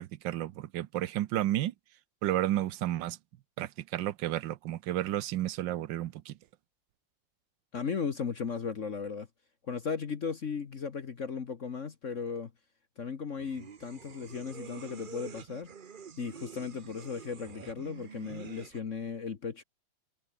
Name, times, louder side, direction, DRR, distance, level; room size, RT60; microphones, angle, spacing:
voice 1, 0.0-1.7 2.2-3.2 3.6-6.3, right 13 dB, 80° right, 1.4 m, -32 dB
voice 2, 7.7-9.3 9.7-12.5 13.0-15.7 16.2-19.6, left 6 dB, 45° left, 1.4 m, -36 dB
sound 1, 13.4-18.8, right 6 dB, 40° right, 0.7 m, -47 dB
omnidirectional pair, 2.0 m